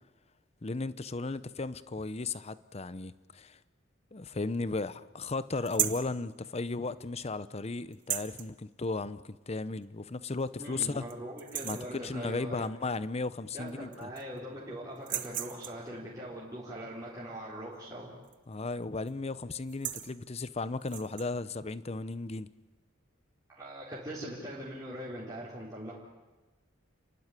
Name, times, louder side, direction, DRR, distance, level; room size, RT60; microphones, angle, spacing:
voice 1, 0.6-3.6 4.1-11.0 11.6-14.1 18.5-22.5, left 3 dB, 30° left, 0.7 m, -35 dB
sound 1, 5.6-6.1 7.9-8.5 9.8-9.9 10.4-10.5 10.9-11.1 11.4-11.9 13.3-13.4 13.7-14.4 15.0-15.9 18.2-18.5 18.8-19.1 19.6-20.1 20.8-21.3, right 11 dB, 40° right, 1.2 m, -35 dB
voice 2, 10.6-12.7 13.5-18.1 23.5-25.9, right 1 dB, 15° right, 4.1 m, -41 dB
29.5 x 12.0 x 9.8 m
head